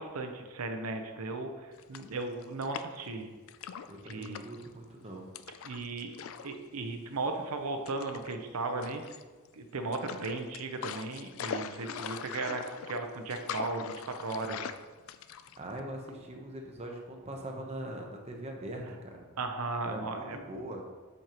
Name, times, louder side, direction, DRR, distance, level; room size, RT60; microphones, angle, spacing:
voice 1, 0.0-3.3 4.1-4.4 5.6-6.1 6.4-9.0 9.5-12.6 12.9-14.6 19.4-20.4, right 3 dB, 85° right, 5 dB, 0.7 m, -36 dB
sound 1, 1.7-3.1 3.5-4.7 5.3-6.6 6.8-7.0 7.9-8.3 8.8-9.5 9.9-15.8, left 7 dB, 65° left, 0.3 m, -41 dB
voice 2, 3.9-5.3 15.3-19.3 19.9-20.9, right 1 dB, 30° right, 1 dB, 0.8 m, -42 dB
7.8 x 5.3 x 3.0 m, 1.4 s
head